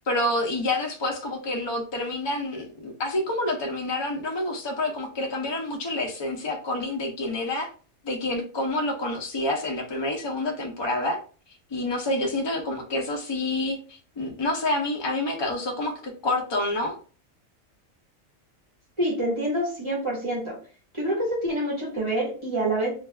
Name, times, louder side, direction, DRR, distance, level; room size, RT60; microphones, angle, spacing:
voice 1, 0.0-7.7 8.0-11.2 11.7-17.0, left 2 dB, 45° left, 1 dB, 0.3 m, -28 dB
voice 2, 19.0-20.6 20.9-22.9, right 1 dB, 25° right, -4 dB, 1.1 m, -26 dB
2.5 x 2.3 x 3.2 m, 0.39 s
omnidirectional pair, 1.4 m